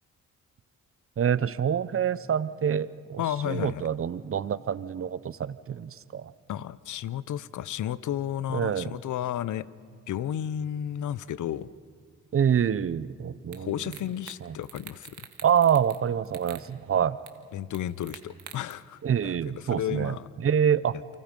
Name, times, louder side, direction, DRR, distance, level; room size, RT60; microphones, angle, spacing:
voice 1, 1.2-6.3 8.5-8.9 12.3-14.0 14.4-14.6 15.4-17.2 19.0-21.0, right 8 dB, 45° right, 17 dB, 0.7 m, -26 dB
voice 2, 3.2-3.9 6.5-9.7 10.1-11.7 13.6-15.3 17.5-19.4 19.6-20.3, left 11 dB, 70° left, 19 dB, 0.7 m, -32 dB
sound 1, 13.5-13.6 13.9-14.4 14.6-16.0 16.3-16.6 17.3-17.4 17.7-18.7, right 9 dB, 70° right, 1.8 m, -45 dB
29.0 x 24.5 x 5.3 m, 2.2 s
cardioid pair, 80°, 31 cm